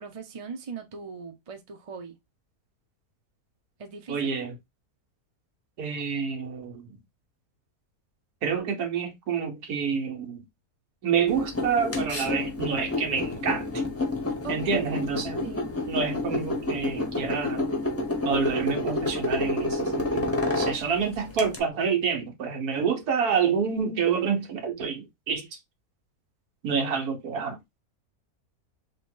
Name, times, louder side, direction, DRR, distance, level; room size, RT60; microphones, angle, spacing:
voice 1, 0.0-2.2 3.8-4.3 14.4-15.0 15.4-15.7, right 5 dB, 35° right, 0.6 m, -40 dB
voice 2, 4.1-4.5 5.8-7.0 8.4-10.5 11.0-13.7 14.5-15.4 15.9-17.7 18.2-25.5 26.6-27.6, right 6 dB, 90° right, 1.5 m, -28 dB
sound 1, 11.3-21.6, left 2 dB, 10° left, 0.8 m, -29 dB
3.1 x 3.0 x 4.4 m
omnidirectional pair, 1.6 m